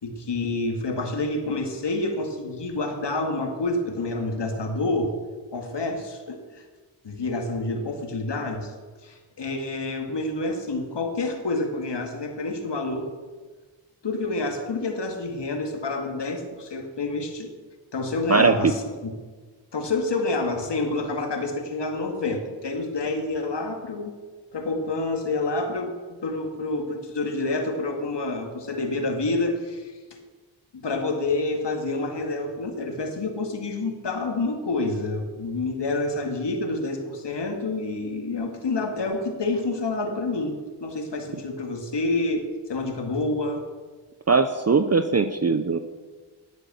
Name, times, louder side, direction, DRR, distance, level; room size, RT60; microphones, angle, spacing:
voice 1, 0.0-5.1 5.5-6.6 7.0-8.7 9.0-13.1 14.0-17.5 17.9-19.1 19.7-24.1 24.5-25.9 26.2-30.0 30.8-43.6, left 2 dB, 55° left, 3 dB, 2.4 m, -28 dB
voice 2, 18.3-18.7 44.3-45.8, right 4 dB, 30° right, 9 dB, 0.8 m, -20 dB
11.0 x 7.9 x 7.1 m, 1.4 s
cardioid pair, 45°, 49 cm